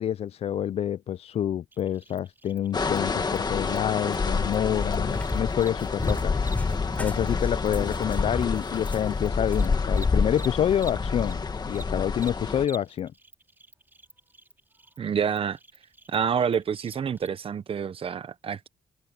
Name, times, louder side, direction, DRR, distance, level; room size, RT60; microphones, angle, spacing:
voice 1, 0.0-6.3 7.0-11.4 11.7-13.1, left 10 dB, 55° left, 0.4 m, -27 dB
Cricket, 1.7-11.3 11.6-17.3, right 2 dB, 15° right, 5.0 m, -49 dB
sound 1, 2.7-12.7, left 4 dB, 35° left, 2.2 m, -28 dB
Cat, 4.6-9.8, left 1 dB, 10° left, 6.1 m, -35 dB
voice 2, 15.0-15.6 16.1-18.7, right 7 dB, 45° right, 0.9 m, -28 dB
cardioid pair, 95°, 13 cm